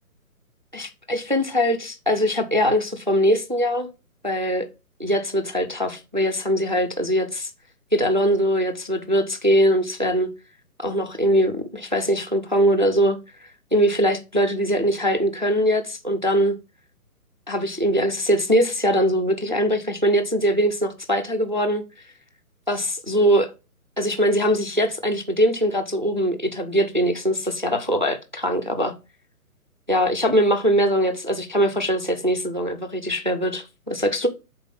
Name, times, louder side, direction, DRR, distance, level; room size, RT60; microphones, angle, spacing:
voice 1, 0.7-3.9 4.2-4.7 5.0-7.5 7.9-10.3 10.8-13.2 13.7-16.6 17.5-21.8 22.7-23.5 24.0-28.9 29.9-34.3, equal, 35° right, 0.4 m, -22 dB
5.7 x 4.0 x 5.1 m
hypercardioid pair, 175°, 44 cm